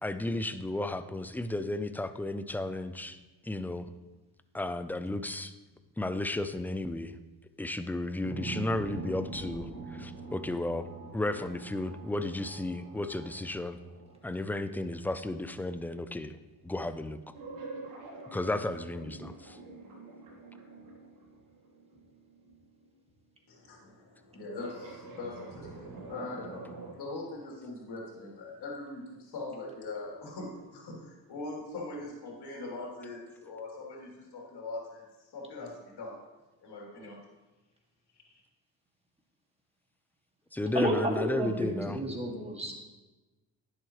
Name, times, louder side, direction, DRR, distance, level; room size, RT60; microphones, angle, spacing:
voice 1, 0.0-3.2 3.4-3.9 4.5-5.5 6.0-7.2 7.6-10.9 11.1-13.8 14.2-16.4 16.6-17.2 18.3-19.6 40.5-42.0, left 2 dB, 5° left, 11 dB, 0.4 m, -33 dB
sound 1, 8.2-15.6 17.3-22.8 24.6-26.9, right 3 dB, 70° right, 3.1 m, -45 dB
voice 2, 23.5-36.1 36.6-37.2 38.2-38.4, left 2 dB, 55° left, -3 dB, 3.3 m, -42 dB
voice 3, 40.7-42.7, right 1 dB, 15° right, 0 dB, 2.2 m, -31 dB
10.5 x 7.9 x 3.1 m, 1.1 s
supercardioid pair, 75°, 47 cm